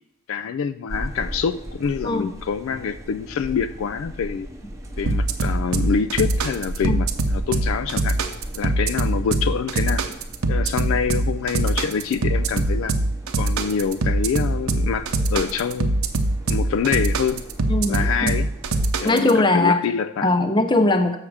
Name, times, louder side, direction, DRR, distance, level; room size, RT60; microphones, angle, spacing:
voice 1, 0.3-4.5 5.0-8.2 8.5-10.0 10.5-12.9 13.4-16.0 16.5-17.5 17.9-18.5 19.0-20.3, left 6 dB, 65° left, 12 dB, 0.3 m, -26 dB
sound 1, 0.9-18.9, right 1 dB, 15° right, 0.8 m, -37 dB
sound 2, 5.1-19.3, right 2 dB, 70° right, 0.7 m, -22 dB
voice 2, 17.7-18.3 19.0-19.8 20.2-21.2, left 2 dB, 20° left, 7 dB, 0.6 m, -20 dB
7.2 x 6.4 x 4.8 m, 0.83 s
head